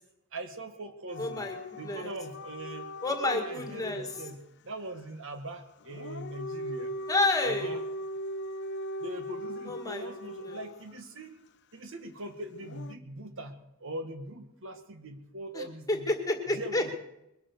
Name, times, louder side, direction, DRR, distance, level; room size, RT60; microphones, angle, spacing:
voice 1, 0.3-1.5 1.8-2.9 3.2-6.9 7.4-7.8 9.0-11.4 11.7-16.1 16.5-16.9, right 1 dB, 60° right, 7 dB, 1.7 m, -41 dB
Dog / Siren, 1.1-4.4 5.8-11.0 12.6-12.9, equal, 50° left, 0.7 m, -39 dB
voice 2, 1.2-2.1 3.0-4.1 7.1-7.7 9.7-10.1 10.4-10.6 15.5-16.9, left 2 dB, 15° left, 4 dB, 1.9 m, -30 dB
22.0 x 8.8 x 6.6 m, 0.86 s
head